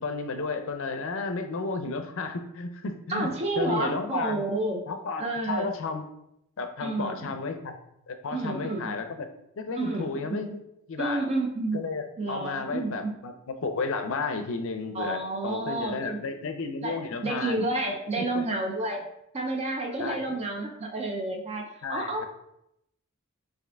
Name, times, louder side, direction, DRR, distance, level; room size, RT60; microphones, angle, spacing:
voice 1, 0.0-3.3 3.6-4.4 4.9-6.0 6.6-7.7 8.1-9.3 9.6-10.6 10.9-11.2 11.7-17.7 18.2-18.4 20.0-20.3 21.8-22.3, left 4 dB, 60° left, 7 dB, 0.5 m, -32 dB
voice 2, 3.1-4.9 5.2-5.7 6.8-7.3 8.3-8.9 9.8-10.5 11.0-11.8 12.2-13.2 14.9-16.2 16.8-19.1 19.3-22.3, right 2 dB, 30° right, 2 dB, 0.4 m, -30 dB
4.7 x 2.6 x 3.3 m, 0.80 s
head